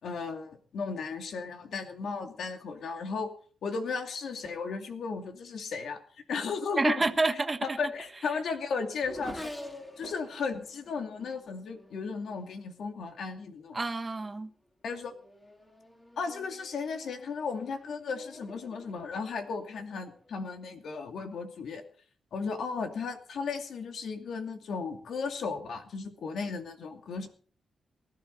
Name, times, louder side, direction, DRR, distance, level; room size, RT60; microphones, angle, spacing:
voice 1, 0.0-3.3 3.6-6.0 6.3-7.0 7.8-9.5 10.0-13.8 14.8-15.1 16.2-21.8 22.3-27.3, left 5 dB, 75° left, 2.5 m, -35 dB
voice 2, 6.8-7.9 13.7-14.5, right 3 dB, 25° right, 1.3 m, -28 dB
Race car auto racing / Accelerating revving vroom, 7.4-13.2 14.1-14.4 14.9-20.8, left 1 dB, 20° left, 3.5 m, -49 dB
19.5 x 13.5 x 4.0 m
cardioid pair, 115°, 0 cm